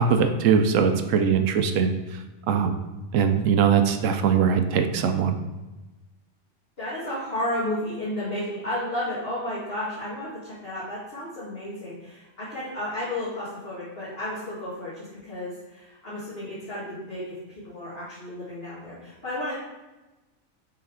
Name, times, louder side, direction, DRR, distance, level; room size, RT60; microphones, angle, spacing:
voice 1, 0.0-1.9 2.5-2.8 3.1-5.4, right 6 dB, 80° right, 7 dB, 1.0 m, -21 dB
voice 2, 6.8-19.6, left 1 dB, 50° left, -11 dB, 2.2 m, -32 dB
5.9 x 4.1 x 4.8 m, 1.1 s
omnidirectional pair, 1.3 m